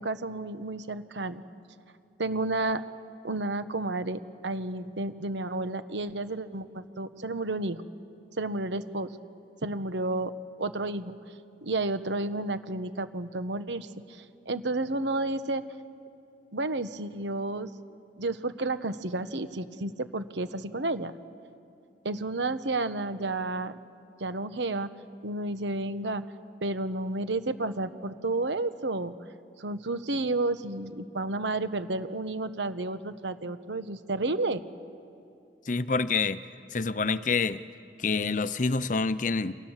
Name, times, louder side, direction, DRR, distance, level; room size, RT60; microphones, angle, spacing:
voice 1, 0.0-1.4 2.2-2.8 3.2-7.8 8.4-9.1 9.6-10.3 10.6-11.2 11.6-15.6 16.5-17.7 18.2-21.1 22.0-23.8 24.2-24.9 25.2-26.2 26.6-29.1 29.6-34.6, right 2 dB, 85° right, 11 dB, 1.2 m, -31 dB
voice 2, 35.7-36.4 36.7-37.6 38.0-39.5, left 4 dB, 45° left, 14 dB, 0.7 m, -27 dB
29.0 x 26.0 x 7.3 m, 2.6 s
head